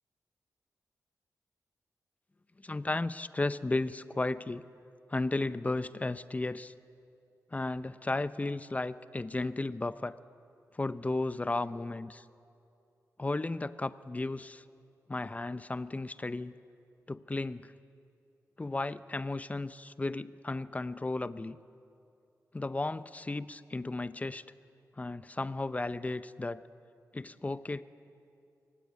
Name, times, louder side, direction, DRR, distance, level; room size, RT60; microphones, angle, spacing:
voice 1, 2.6-4.6 5.1-6.7 7.5-10.2 10.7-12.2 13.2-14.6 15.1-16.5 17.1-17.7 18.6-21.6 22.5-24.4 25.0-26.6 27.1-27.8, left 2 dB, 25° left, 14 dB, 0.6 m, -34 dB
23.5 x 15.5 x 9.3 m, 2.5 s
wide cardioid pair, 90°, 6 cm